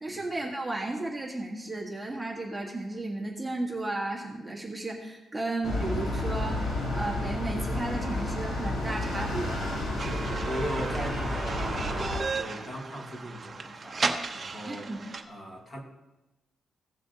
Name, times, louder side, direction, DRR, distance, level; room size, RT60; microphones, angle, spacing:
voice 1, 0.0-9.6 14.6-15.0, right 2 dB, 10° right, -2 dB, 1.6 m, -34 dB
sound 1, 5.6-12.2, left 1 dB, 60° left, 3.5 m, -31 dB
voice 2, 9.9-14.0 14.3-14.9 15.3-15.8, equal, 25° left, 0 dB, 2.0 m, -39 dB
sound 2, 10.0-15.2, right 4 dB, 35° right, 0.9 m, -34 dB
16.5 x 7.2 x 2.9 m, 1.0 s
cardioid pair, 105°, 0 cm